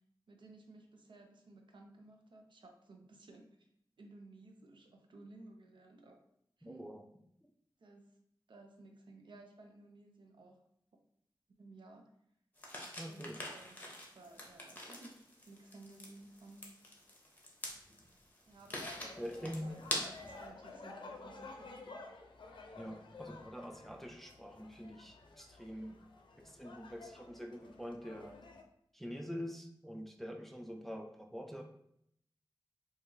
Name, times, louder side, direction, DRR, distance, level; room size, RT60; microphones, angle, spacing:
voice 1, 0.3-3.7 4.0-6.2 6.6-6.9 7.8-8.1 8.5-10.6 11.6-12.1 13.1-13.8 14.1-16.7 18.5-21.8, right 2 dB, 75° right, 3 dB, 0.6 m, -56 dB
voice 2, 6.6-7.0 13.0-13.4 19.2-19.7 22.7-26.0 26.4-28.4 28.9-31.6, equal, 5° left, 3 dB, 0.4 m, -45 dB
sound 1, 12.6-20.4, left 1 dB, 20° left, 0.8 m, -45 dB
sound 2, 18.7-28.6, left 3 dB, 80° left, 0.5 m, -52 dB
4.5 x 2.4 x 2.6 m, 0.73 s
wide cardioid pair, 90°, 8 cm